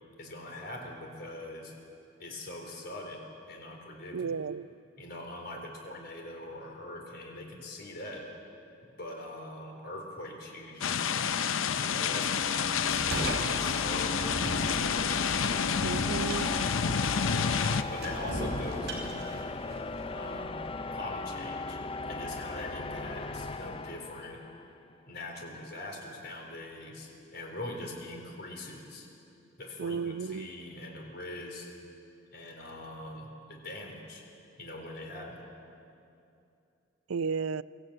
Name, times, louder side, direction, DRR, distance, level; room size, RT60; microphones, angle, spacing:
voice 1, 0.2-1.7 2.2-4.3 5.0-8.3 9.0-11.2 11.8-15.3 17.3-17.6 17.9-19.5 20.1-21.8 22.1-24.4 25.1-29.1 29.6-31.7 32.3-34.2 34.6-35.4, left 1 dB, 50° left, 1 dB, 4.0 m, -42 dB
voice 2, 4.1-4.7 15.8-16.5 29.8-30.5 37.1-37.6, right 5 dB, 85° right, 17 dB, 0.5 m, -33 dB
sound 1, 10.8-17.8, left 7 dB, 75° left, 0.6 m, -29 dB
sound 2, 11.7-24.8, left 3 dB, 25° left, 0.5 m, -38 dB
sound 3, 12.9-20.1, right 1 dB, 55° right, 4.6 m, -39 dB
23.5 x 15.5 x 8.8 m, 2.6 s
head